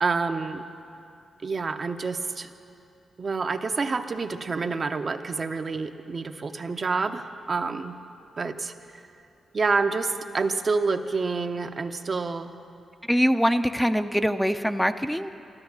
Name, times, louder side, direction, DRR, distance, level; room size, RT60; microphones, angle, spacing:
voice 1, 0.0-0.6 1.4-2.5 3.2-8.0 8.4-8.7 9.5-12.5, right 4 dB, 50° right, 7 dB, 0.7 m, -28 dB
voice 2, 13.1-15.3, equal, 5° left, 9 dB, 0.5 m, -23 dB
12.5 x 12.5 x 6.9 m, 2.7 s
cardioid pair, 55°, 0 cm